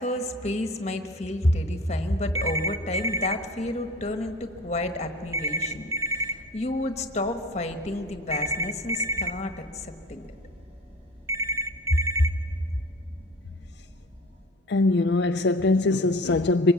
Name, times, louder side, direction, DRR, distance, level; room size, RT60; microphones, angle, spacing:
voice 1, 0.0-10.3 11.9-12.3 12.7-12.8, left 1 dB, 35° left, 1.3 m, -29 dB
sound 1, 1.9-14.5, equal, 35° right, 4.3 m, -48 dB
sound 2, 2.3-3.3 5.3-6.3 8.3-9.3 11.3-12.3, right 1 dB, 15° right, 0.6 m, -28 dB
voice 2, 14.7-16.7, left 2 dB, 55° left, 0.5 m, -21 dB
24.0 x 20.5 x 8.4 m
head